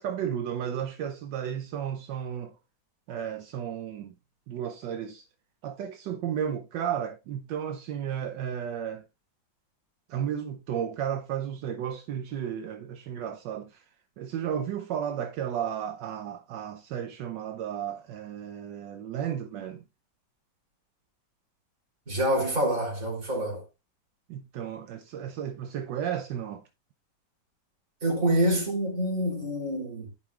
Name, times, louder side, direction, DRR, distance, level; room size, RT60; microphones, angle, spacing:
voice 1, 0.0-2.5 3.1-4.1 4.5-5.3 5.6-9.0 10.1-13.9 14.2-19.8 24.3-26.6, right 9 dB, 75° right, 1.3 m, -33 dB
voice 2, 22.1-23.6 28.0-30.1, right 1 dB, 45° right, 3.7 m, -26 dB
14.0 x 5.3 x 2.3 m
omnidirectional pair, 2.0 m